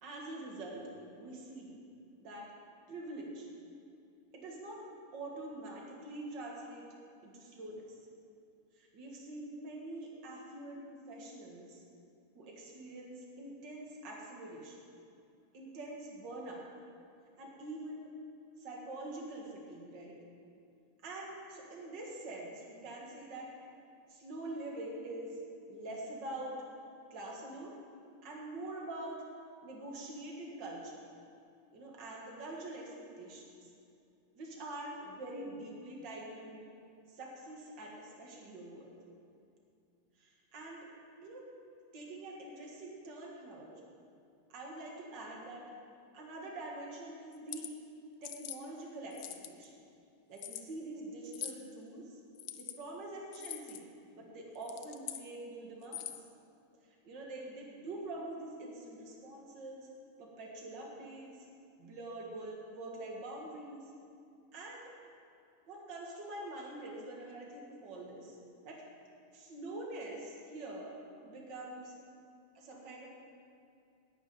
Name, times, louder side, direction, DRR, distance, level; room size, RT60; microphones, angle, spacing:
voice 1, 0.0-1.8 2.2-2.5 2.9-3.5 4.3-4.8 5.1-6.9 7.2-7.8 8.8-11.8 12.4-14.8 15.5-16.7 17.4-18.1 18.6-20.2 21.0-23.5 24.1-25.4 25.7-26.6 27.1-27.8 28.2-29.2 29.6-31.0 31.7-33.7 34.4-36.6 37.1-38.9 40.2-40.9 41.2-41.4 41.9-43.8 44.5-45.6 46.1-47.7 48.2-49.7 50.3-52.2 52.6-53.9 54.1-56.1 57.0-59.9 60.2-61.4 61.8-63.9 64.5-64.9 65.7-68.4 68.6-68.8 69.3-70.9 71.2-71.9 72.5-73.1, right 2 dB, 55° right, -1 dB, 2.3 m, -45 dB
sound 1, 47.3-47.7 48.2-48.6 49.1-49.6 50.4-50.6 51.3-51.6 52.3-52.8 53.3-53.8 54.5-55.2 55.8-56.3, left 11 dB, 75° left, 0.9 m, -43 dB
11.0 x 6.3 x 9.1 m, 2.5 s
omnidirectional pair, 2.4 m